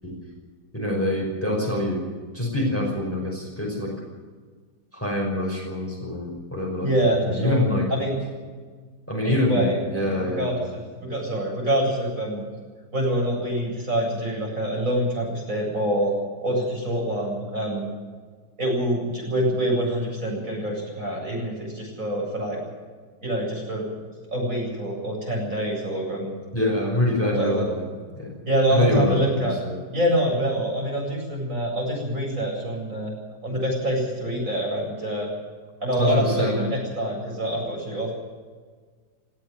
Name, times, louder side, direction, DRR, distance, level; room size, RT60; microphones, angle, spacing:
voice 1, 0.7-2.0 2.3-3.9 4.9-7.9 9.1-10.6 26.5-27.8 28.2-28.3 28.7-29.8 36.0-36.6 37.5-37.6, left 1 dB, 5° left, -1 dB, 5.4 m, -25 dB
voice 2, 6.8-7.6 7.9-8.2 9.2-12.4 12.9-16.1 16.4-17.9 18.6-22.6 23.2-23.9 24.3-26.3 27.2-27.7 28.5-29.6 29.9-33.1 33.4-35.3 35.8-38.1, right 1 dB, 50° right, -2 dB, 8.5 m, -25 dB
18.5 x 16.5 x 9.2 m, 1.5 s
omnidirectional pair, 1.8 m